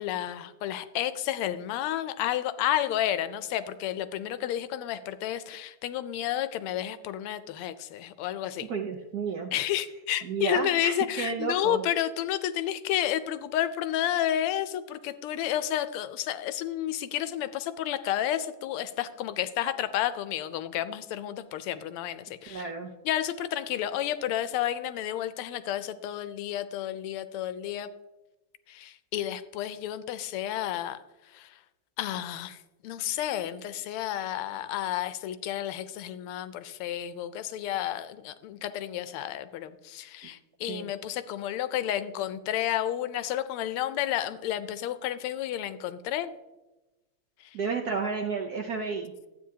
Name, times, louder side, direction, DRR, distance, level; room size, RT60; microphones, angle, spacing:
voice 1, 0.0-8.7 9.5-22.7 23.0-27.9 28.7-31.0 31.3-31.5 32.0-32.6 32.8-46.3, left 11 dB, 85° left, 13 dB, 1.5 m, -31 dB
voice 2, 8.6-9.5 10.2-11.8 22.5-22.9 40.7-40.9 47.5-49.3, right 5 dB, 70° right, 2 dB, 0.9 m, -32 dB
12.0 x 8.7 x 2.8 m, 1.0 s
omnidirectional pair, 2.4 m